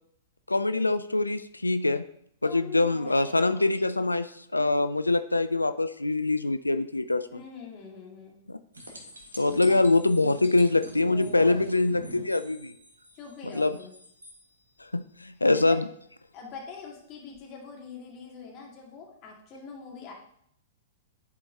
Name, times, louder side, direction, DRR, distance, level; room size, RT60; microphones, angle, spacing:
voice 1, 0.5-2.0 2.4-7.3 8.5-8.6 9.3-12.7 13.5-13.7 14.8-15.8, left 2 dB, 90° left, 11 dB, 0.3 m, -24 dB
voice 2, 2.4-3.7 7.3-8.4 9.6-9.8 11.0-11.7 13.1-14.0 15.5-15.8 16.3-20.1, left 6 dB, 35° left, -1 dB, 2.1 m, -43 dB
sound 1, 8.7-14.4 17.3-17.4, right 1 dB, 80° right, 1.5 m, -45 dB
10.5 x 4.5 x 2.8 m, 0.68 s
figure-of-eight pair, 105°, 0 cm